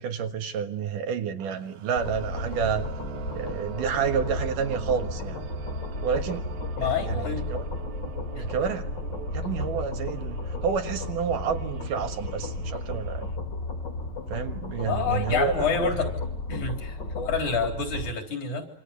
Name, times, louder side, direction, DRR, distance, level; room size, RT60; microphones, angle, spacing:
voice 1, 0.0-2.8 3.4-5.4 6.0-6.5 6.8-7.6 8.4-8.9 9.3-13.3 14.3-15.5 15.8-16.0, right 7 dB, 70° right, 6 dB, 3.1 m, -29 dB
sound 1, 1.4-13.4, right 9 dB, 90° right, 3.6 m, -44 dB
sound 2, 2.0-18.1, left 2 dB, 35° left, 3.0 m, -33 dB
voice 2, 6.8-7.5 14.8-16.1 16.5-18.7, left 5 dB, 55° left, 4 dB, 5.2 m, -28 dB
26.5 x 26.0 x 8.4 m, 0.71 s
omnidirectional pair, 4.0 m